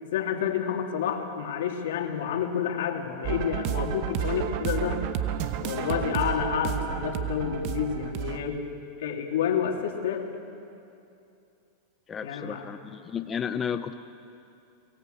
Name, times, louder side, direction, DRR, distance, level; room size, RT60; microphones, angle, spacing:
voice 1, 0.1-5.1 5.6-8.6 9.0-10.2 12.2-12.7, left 8 dB, 80° left, 2 dB, 2.7 m, -29 dB
sound 1, 3.2-8.4, right 9 dB, 45° right, 1.0 m, -31 dB
voice 2, 12.1-13.9, left 7 dB, 15° left, 8 dB, 0.5 m, -32 dB
23.0 x 18.0 x 8.0 m, 2.6 s
supercardioid pair, 160°, 0 cm